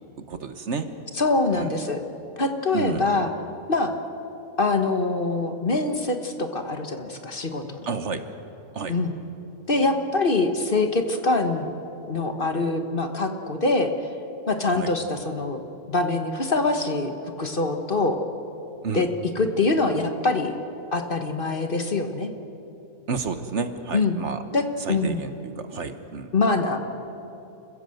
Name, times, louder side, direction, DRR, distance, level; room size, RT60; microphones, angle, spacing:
voice 1, 0.3-0.9 1.5-1.7 2.7-3.3 7.8-8.3 8.7-9.0 14.7-14.9 18.8-19.1 23.1-24.4 24.8-26.3, right 5 dB, 55° right, 9 dB, 1.3 m, -31 dB
voice 2, 1.2-2.0 2.4-3.3 3.7-3.9 4.6-7.9 8.9-9.1 9.7-11.7 12.1-13.9 14.5-15.6 15.9-17.1 17.4-18.2 18.9-19.1 19.3-20.5 20.9-22.3 23.9-24.2 24.5-24.6 24.9-25.2 26.3-26.8, left 3 dB, 40° left, 6 dB, 1.4 m, -24 dB
28.5 x 15.5 x 7.8 m, 2.9 s
omnidirectional pair, 1.5 m